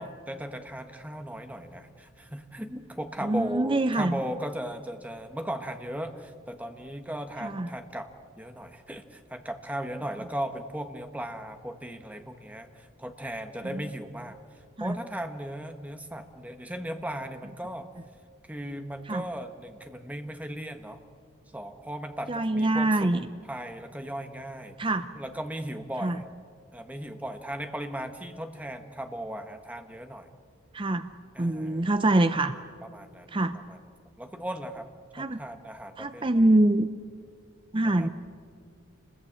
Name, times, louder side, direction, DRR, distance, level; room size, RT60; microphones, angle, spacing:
voice 1, 0.0-8.1 8.4-17.9 18.5-21.0 21.5-24.8 25.1-26.2 26.7-30.3 31.3-31.9 32.9-33.3 33.7-33.8 34.2-34.9 35.2-36.2 37.8-38.1, right 1 dB, 5° right, 6 dB, 1.3 m, -37 dB
voice 2, 3.2-4.2 7.4-7.7 14.8-15.0 19.1-19.2 22.3-23.3 24.8-25.1 26.0-26.2 30.7-31.1 31.4-32.5 33.3-33.6 35.1-35.4 36.0-36.9 37.7-38.1, right 2 dB, 25° right, 10 dB, 0.6 m, -24 dB
28.5 x 21.0 x 8.8 m, 2.2 s
head